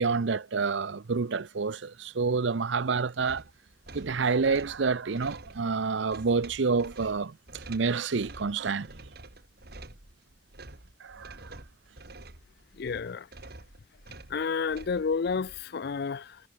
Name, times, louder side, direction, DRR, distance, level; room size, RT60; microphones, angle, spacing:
voice 1, 0.0-3.4 3.9-8.9 11.0-11.5, right 4 dB, 70° right, 0.6 m, -28 dB
sound 1, 3.2-15.6, right 2 dB, 55° right, 2.9 m, -48 dB
voice 2, 12.8-13.3 14.3-16.4, left 5 dB, 55° left, 0.4 m, -30 dB
head